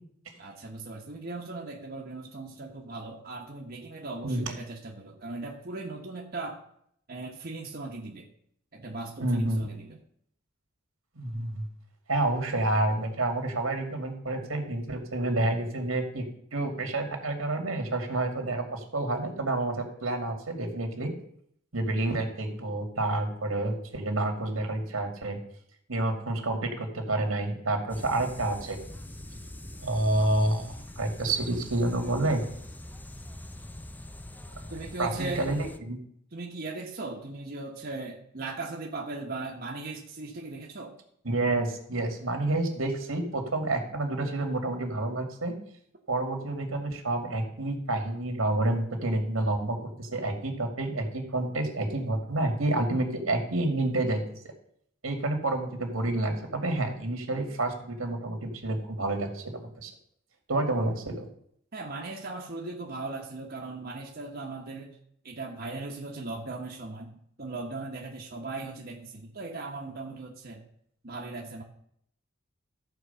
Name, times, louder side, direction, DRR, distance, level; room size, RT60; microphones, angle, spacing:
voice 1, 0.4-6.6 7.1-8.3 8.7-10.0 34.7-35.5 36.3-41.0 61.7-64.9 65.2-70.6 71.0-71.6, right 2 dB, 50° right, -1 dB, 1.2 m, -38 dB
voice 2, 9.2-9.7 11.2-11.6 12.1-16.2 16.5-21.1 21.7-25.4 25.9-28.8 29.8-32.4 34.7-36.0 41.2-45.5 46.1-54.2 55.0-59.9 60.5-61.3, right 2 dB, 85° right, 4 dB, 2.3 m, -29 dB
sound 1, 27.9-35.8, left 1 dB, 10° left, 0.5 m, -43 dB
14.0 x 4.8 x 6.9 m, 0.69 s
head